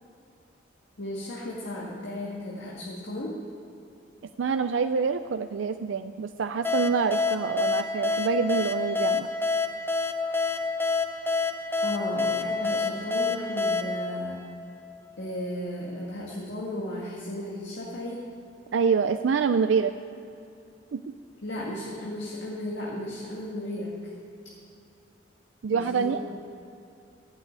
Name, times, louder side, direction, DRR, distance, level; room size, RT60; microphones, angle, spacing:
voice 1, 1.0-3.4 11.8-14.4 15.2-18.2 21.4-23.9 25.7-26.2, left 1 dB, 70° left, -5 dB, 2.0 m, -35 dB
voice 2, 4.4-9.3 18.7-19.9 20.9-21.1 25.6-26.2, right 5 dB, 90° right, 9 dB, 0.4 m, -26 dB
sound 1, 6.6-15.1, left 4 dB, 10° left, 0.8 m, -28 dB
12.0 x 7.7 x 8.8 m, 2.7 s
head